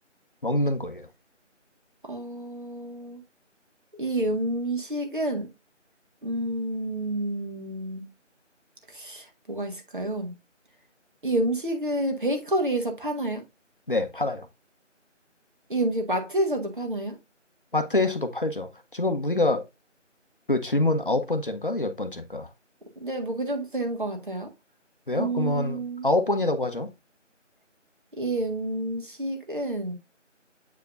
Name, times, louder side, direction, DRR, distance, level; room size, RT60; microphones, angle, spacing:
voice 1, 0.4-1.1 13.9-14.5 17.7-19.6 20.5-22.5 25.1-26.9, left 2 dB, 45° left, 1.0 m, -26 dB
voice 2, 2.1-3.2 4.0-5.5 6.2-8.1 8.9-10.3 11.2-13.4 15.7-17.2 23.0-24.5 25.1-26.1 28.2-29.9, right 1 dB, 40° right, 1.7 m, -29 dB
8.1 x 4.7 x 2.5 m
figure-of-eight pair, 170°, 37 cm